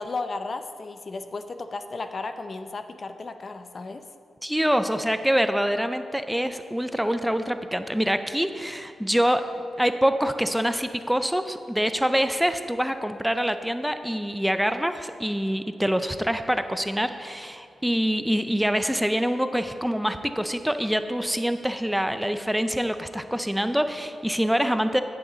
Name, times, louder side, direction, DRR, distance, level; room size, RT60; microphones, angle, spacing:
voice 1, 0.0-4.1, left 3 dB, 50° left, 9 dB, 0.5 m, -34 dB
voice 2, 4.4-25.0, equal, 5° right, 9 dB, 0.4 m, -25 dB
9.5 x 8.6 x 3.9 m, 2.4 s
cardioid pair, 75°, 0 cm